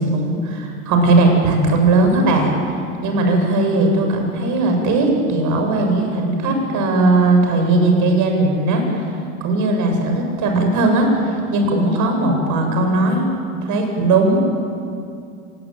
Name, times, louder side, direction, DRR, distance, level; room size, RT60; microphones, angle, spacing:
voice 1, 0.0-9.1 9.4-13.3 13.6-14.4, right 2 dB, 45° right, 3 dB, 7.7 m, -18 dB
26.0 x 21.0 x 9.3 m, 2.5 s
hypercardioid pair, 90°, 42 cm